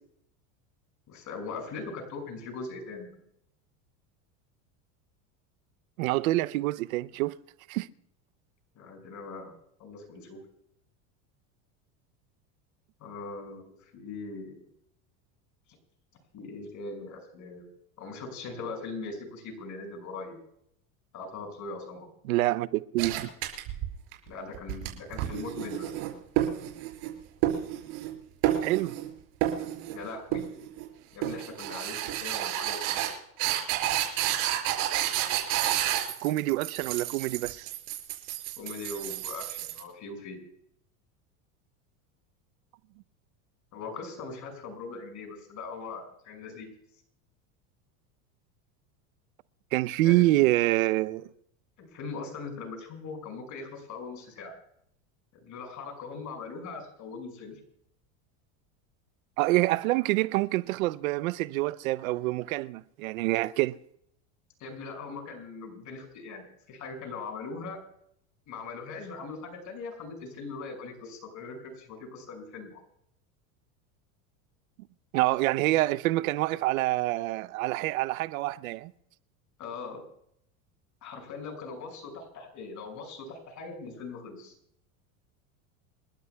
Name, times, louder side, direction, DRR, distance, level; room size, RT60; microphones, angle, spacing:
voice 1, 1.1-3.1 8.8-9.5 9.8-10.4 13.0-14.6 16.3-17.7 18.0-20.4 21.1-22.1 24.3-25.9 29.9-30.4 31.1-33.1 38.6-40.4 43.7-46.7 50.0-50.2 51.8-54.5 55.4-57.6 64.6-67.8 68.5-72.8 79.6-80.0 81.0-84.5, left 4 dB, 45° left, 5.9 m, -40 dB
voice 2, 6.0-7.4 7.7-7.9 22.2-23.3 28.6-28.9 36.2-37.7 49.7-51.3 59.4-63.8 75.1-78.9, right 18 dB, 80° right, 0.7 m, -26 dB
sound 1, 23.0-24.1 24.5-27.1 27.4-28.1 28.4-29.1 29.4-30.0 30.3-30.9 31.2-39.8, right 12 dB, 65° right, 5.3 m, -30 dB
28.5 x 12.5 x 2.3 m
supercardioid pair, 120°, 41 cm